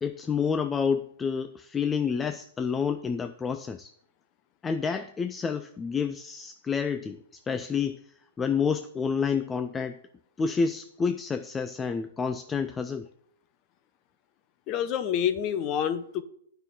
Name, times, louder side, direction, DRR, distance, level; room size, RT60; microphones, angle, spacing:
voice 1, 0.0-3.9 4.6-10.0 10.4-13.1, left 6 dB, 15° left, 9 dB, 0.4 m, -29 dB
voice 2, 14.7-16.2, left 9 dB, 30° left, 12 dB, 0.8 m, -27 dB
9.8 x 5.6 x 5.6 m, 0.66 s
hypercardioid pair, 145°, 0 cm